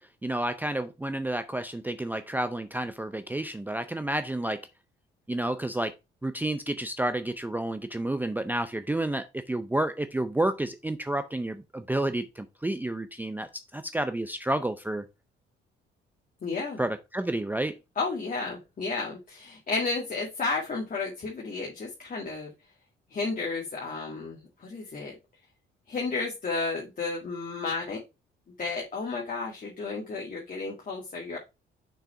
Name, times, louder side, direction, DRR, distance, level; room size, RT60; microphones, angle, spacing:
voice 1, 0.2-4.6 5.3-5.9 6.2-15.0 16.8-17.8, right 1 dB, 10° right, 0.5 m, -30 dB
voice 2, 16.4-16.8 18.0-22.5 23.1-25.1 25.9-28.0 28.6-31.4, left 4 dB, 45° left, 2.0 m, -32 dB
6.2 x 4.0 x 4.6 m
cardioid pair, 90°, 20 cm